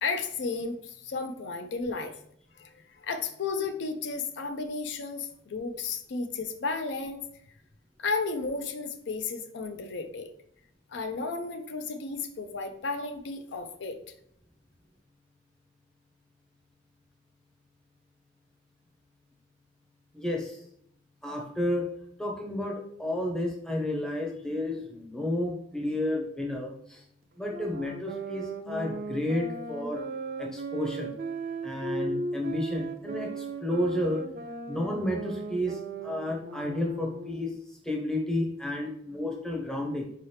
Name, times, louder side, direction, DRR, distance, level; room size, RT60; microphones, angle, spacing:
voice 1, 0.0-2.1 2.6-7.2 8.0-10.3 10.9-14.0, left 4 dB, 65° left, 7 dB, 0.4 m, -33 dB
voice 2, 20.1-20.6 21.2-21.9 22.2-27.0 27.4-30.0 30.4-31.1 31.6-34.3 34.7-40.1, left 1 dB, 5° left, 0 dB, 0.6 m, -31 dB
sound 1, 27.5-37.5, right 3 dB, 45° right, 0.4 m, -37 dB
4.7 x 2.8 x 3.2 m, 0.68 s
head